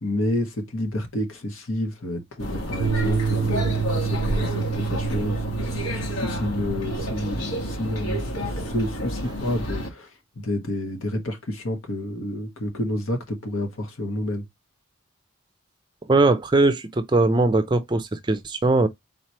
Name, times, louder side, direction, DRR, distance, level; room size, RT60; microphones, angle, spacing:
voice 1, 0.0-10.1 10.4-14.4, left 1 dB, 75° left, 1.3 m, -29 dB
sound 1, 2.4-9.9, equal, 90° left, 1.7 m, -30 dB
sound 2, 2.8-9.9, right 6 dB, 90° right, 0.4 m, -30 dB
voice 2, 16.1-18.9, right 2 dB, 20° right, 0.4 m, -20 dB
4.0 x 3.1 x 4.3 m
head